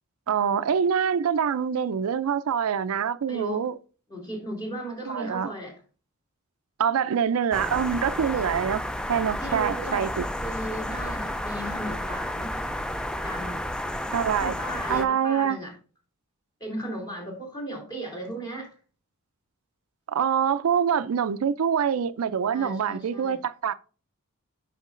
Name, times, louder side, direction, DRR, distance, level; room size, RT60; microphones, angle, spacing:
voice 1, 0.3-3.7 5.1-5.5 6.8-8.8 9.1-10.3 14.1-14.5 14.9-15.6 20.1-23.7, right 7 dB, 85° right, 0.4 m, -25 dB
voice 2, 3.3-3.7 4.1-5.8 9.4-10.0 10.4-12.6 13.2-13.7 14.4-15.7 16.6-18.7 22.5-23.4, right 1 dB, 20° left, 2.6 m, -36 dB
sound 1, 7.5-15.1, left 1 dB, 5° left, 0.3 m, -31 dB
8.2 x 5.7 x 2.5 m
head